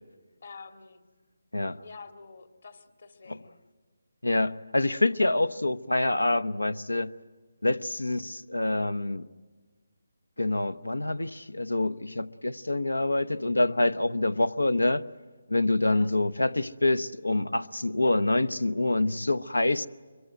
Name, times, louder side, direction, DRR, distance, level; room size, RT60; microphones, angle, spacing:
voice 1, 0.4-1.0 1.8-3.6 15.8-16.1, left 4 dB, 60° left, 2.1 m, -47 dB
voice 2, 4.2-7.1 7.6-9.2 10.4-15.0 15.5-19.9, left 2 dB, 90° left, 0.8 m, -26 dB
24.5 x 22.5 x 9.2 m
figure-of-eight pair, 155°, 0 cm